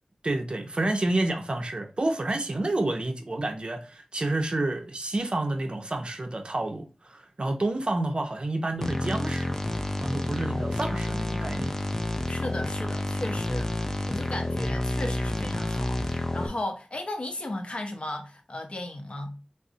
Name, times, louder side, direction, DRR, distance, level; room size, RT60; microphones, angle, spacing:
voice 1, 0.2-9.5 10.0-11.7, right 2 dB, 45° right, 0.5 m, -29 dB
sound 1, 8.8-16.5, left 1 dB, 15° left, 0.4 m, -29 dB
voice 2, 12.3-19.4, left 1 dB, 50° left, 0.7 m, -35 dB
3.7 x 2.0 x 2.6 m
wide cardioid pair, 65°, 2 cm